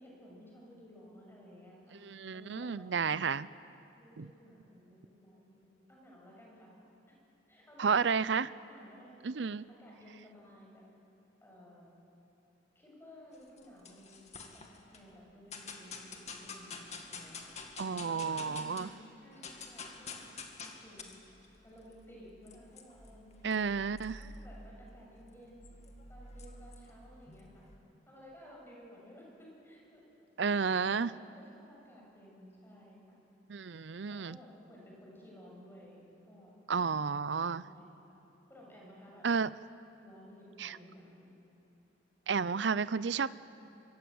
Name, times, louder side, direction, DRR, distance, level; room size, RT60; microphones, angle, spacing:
voice 1, 0.0-2.9 4.0-6.7 7.1-7.2 7.5-8.2 8.7-10.8 11.4-11.9 12.8-14.2 14.5-14.6 14.9-17.5 17.9-20.2 20.6-21.1 21.6-23.6 24.2-25.8 26.1-27.6 28.1-30.0 30.6-33.2 34.0-37.0 37.5-38.0 38.5-39.3 40.0-41.4, equal, 15° left, -3 dB, 7.1 m, -55 dB
voice 2, 2.0-3.5 4.2-4.3 7.8-8.5 9.2-9.6 17.8-18.9 23.4-24.2 30.4-31.1 33.5-34.4 36.7-37.6 39.2-39.5 40.6-40.8 42.3-43.3, right 5 dB, 70° right, 17 dB, 0.6 m, -31 dB
sound 1, 13.3-15.0 15.5-19.0 19.2-27.8, left 4 dB, 40° left, 2.3 m, -49 dB
26.0 x 24.0 x 7.9 m, 2.8 s
head